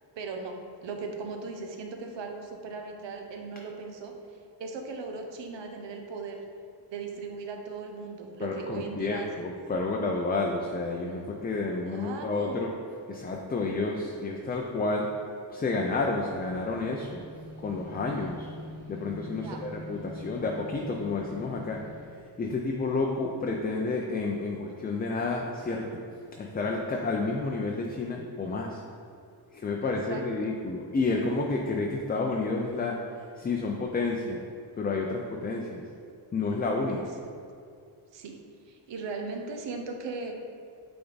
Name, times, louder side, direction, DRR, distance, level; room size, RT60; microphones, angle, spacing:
voice 1, 0.2-6.4 6.9-9.4 11.8-12.7 19.4-19.6 29.8-30.5 36.9-37.0 38.1-38.4 38.7-40.3, right 4 dB, 85° right, 3 dB, 0.9 m, -38 dB
voice 2, 8.4-12.7 13.1-15.1 15.5-17.2 17.6-18.5 18.9-21.8 22.4-25.8 26.4-28.8 29.5-33.0 33.4-34.4 34.8-35.8 36.3-37.1, left 3 dB, 25° left, 0 dB, 0.3 m, -30 dB
sound 1, 15.7-22.1, left 1 dB, 35° right, 1.1 m, -45 dB
8.6 x 3.4 x 3.9 m, 2.4 s
wide cardioid pair, 170°, 43 cm